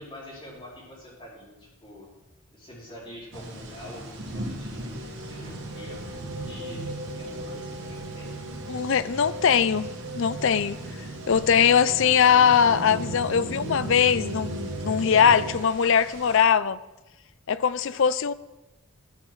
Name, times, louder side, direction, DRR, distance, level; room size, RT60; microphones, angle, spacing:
voice 1, 0.0-2.1 2.5-8.4, left 1 dB, 25° left, 4.1 m, -46 dB
sound 1, 3.3-16.4, right 1 dB, 60° right, 2.4 m, -42 dB
sound 2, 4.9-15.6, right 2 dB, 85° right, 1.8 m, -36 dB
voice 2, 8.7-9.9 10.1-10.8 11.3-16.8 17.5-18.3, left 7 dB, 60° left, 0.4 m, -21 dB
13.0 x 7.4 x 6.2 m
head